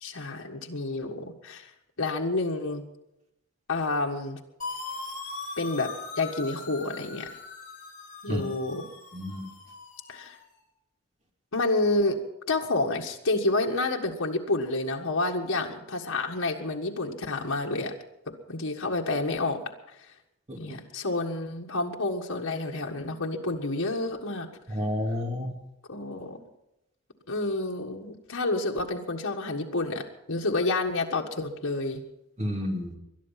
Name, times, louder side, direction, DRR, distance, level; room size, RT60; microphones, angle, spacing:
voice 1, 0.0-1.7 2.0-2.8 3.7-4.4 5.6-7.3 8.2-8.9 10.1-10.4 11.5-12.2 12.5-17.9 18.5-19.6 20.6-24.5 25.9-26.4 27.3-32.0, left 2 dB, 80° left, 0 dB, 1.7 m, -29 dB
sound 1, 4.6-10.4, left 3 dB, 40° left, 6.3 m, -40 dB
voice 2, 9.1-9.4 20.5-20.6 24.7-25.5 32.4-33.0, left 1 dB, 30° right, 2 dB, 2.6 m, -30 dB
21.0 x 11.5 x 5.9 m, 0.88 s
head